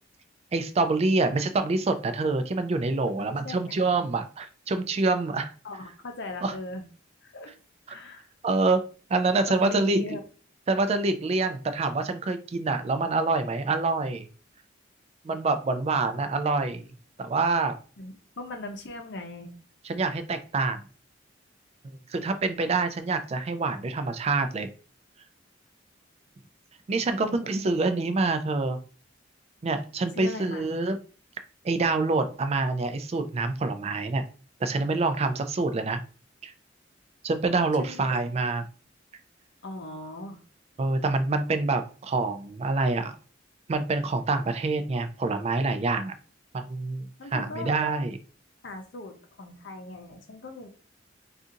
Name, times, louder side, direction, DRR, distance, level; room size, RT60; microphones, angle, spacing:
voice 1, 0.5-5.5 6.4-6.5 8.4-8.8 9.1-10.1 10.7-14.3 15.2-16.8 17.2-17.7 19.9-20.8 22.1-24.7 26.9-28.8 29.6-31.0 31.6-34.2 34.6-36.0 36.4-36.5 37.2-38.6 40.8-43.1 43.7-46.2 46.5-48.2, right 3 dB, 35° right, 9 dB, 0.3 m, -26 dB
voice 2, 3.1-3.9 5.6-6.8 7.2-7.5 7.9-8.3 9.5-10.2 18.0-19.5 27.2-27.8 30.1-30.7 37.7-38.1 39.6-40.4 47.2-47.7 48.6-50.7, left 2 dB, 60° left, 5 dB, 0.6 m, -39 dB
2.7 x 2.4 x 3.7 m, 0.37 s
head